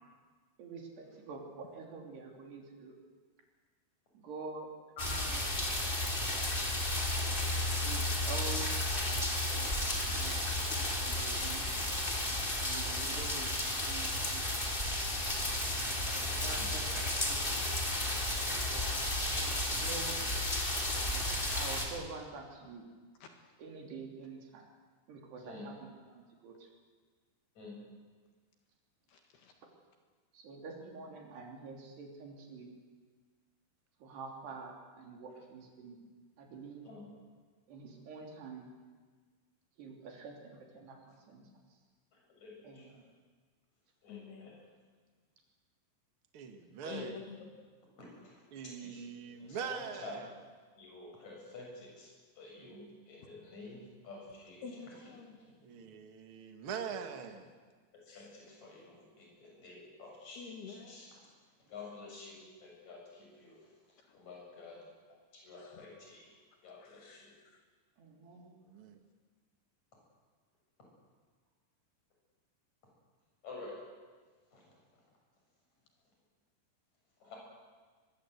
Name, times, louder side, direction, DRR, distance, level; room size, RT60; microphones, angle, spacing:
voice 1, 0.6-2.9 4.1-4.7 5.1-6.0 7.8-11.7 12.5-15.0 16.1-17.7 18.5-18.9 19.7-20.3 21.5-22.9 23.6-24.7 25.1-26.7 29.6-29.7 30.3-32.8 34.0-36.0 36.4-36.9 37.7-38.7 39.8-41.5 42.6-42.9 55.6-55.9 68.0-68.6, right 4 dB, 65° right, 5.3 m, -47 dB
sound 1, 5.0-21.8, left 1 dB, 15° left, 2.5 m, -33 dB
voice 2, 29.1-29.5 44.1-44.5 46.9-47.4 54.6-55.4 58.1-58.3 60.4-60.9 65.6-65.8 66.7-67.6, left 6 dB, 65° left, 3.5 m, -49 dB
voice 3, 42.3-43.0 44.0-44.6 46.8-47.1 48.0-48.4 48.8-50.2 50.8-54.6 54.9-55.1 55.4-55.5 58.1-61.1 61.7-64.8 65.3-66.3 66.6-67.3 73.4-73.8 74.5-74.6 77.2-77.4, left 3 dB, 35° left, 8.5 m, -50 dB
voice 4, 46.3-47.2 48.5-50.3 52.6-52.8 55.6-57.5 68.7-69.0, right 7 dB, 80° right, 1.2 m, -42 dB
23.0 x 22.5 x 8.2 m
omnidirectional pair, 5.4 m